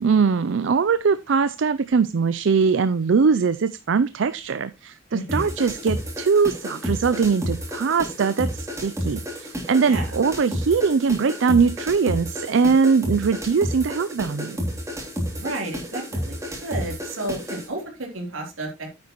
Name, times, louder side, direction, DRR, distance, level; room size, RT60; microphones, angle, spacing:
voice 1, 0.0-14.6, right 5 dB, 65° right, 14 dB, 0.4 m, -21 dB
voice 2, 5.1-5.5 9.8-10.1 15.3-18.9, right 2 dB, 85° right, 2 dB, 3.4 m, -32 dB
sound 1, 5.3-17.7, equal, 15° right, 3.1 m, -31 dB
9.6 x 8.3 x 3.0 m, 0.24 s
head